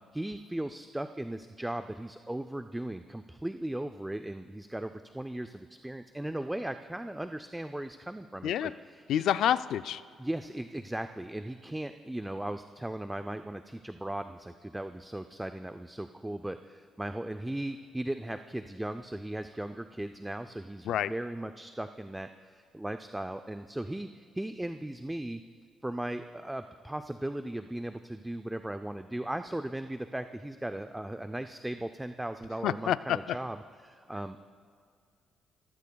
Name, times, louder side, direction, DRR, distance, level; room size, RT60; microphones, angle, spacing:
voice 1, 0.1-9.0 10.2-25.4 25.8-34.4, right 1 dB, 10° right, 8 dB, 0.4 m, -37 dB
voice 2, 9.1-10.0 20.8-21.1 32.6-33.4, left 10 dB, 75° left, 14 dB, 0.3 m, -28 dB
26.5 x 15.0 x 2.3 m, 2.2 s
cardioid pair, 90°, 0 cm